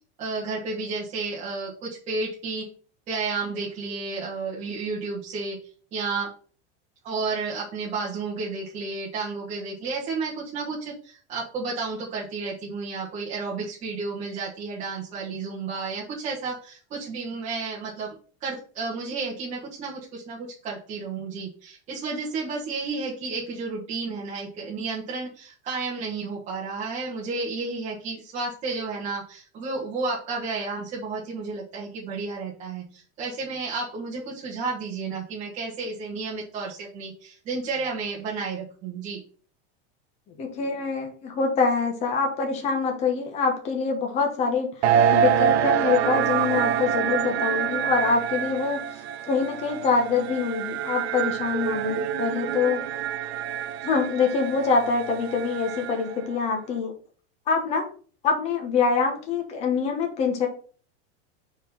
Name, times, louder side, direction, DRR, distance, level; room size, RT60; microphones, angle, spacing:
voice 1, 0.2-2.7 3.1-5.6 5.9-6.3 7.0-18.1 18.4-39.2 51.9-52.1, right 4 dB, 20° right, -7 dB, 1.3 m, -32 dB
voice 2, 40.4-48.8 49.3-52.8 53.8-56.9 57.5-57.9 58.2-60.5, left 5 dB, 20° left, 2 dB, 1.0 m, -25 dB
sound 1, 44.8-56.2, right 9 dB, 75° right, 0.8 m, -26 dB
4.6 x 4.4 x 5.5 m, 0.42 s
supercardioid pair, 175°, 32 cm